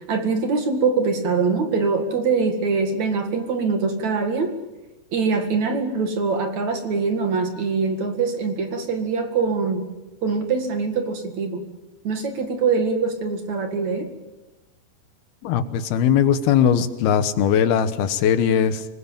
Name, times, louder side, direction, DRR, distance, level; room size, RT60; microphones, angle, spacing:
voice 1, 0.1-4.5 5.1-9.9 10.2-11.6 12.0-14.1, right 4 dB, 50° right, 6 dB, 3.0 m, -23 dB
voice 2, 15.4-18.9, left 8 dB, 75° left, 11 dB, 3.1 m, -19 dB
25.5 x 20.5 x 9.0 m, 1.0 s
omnidirectional pair, 4.6 m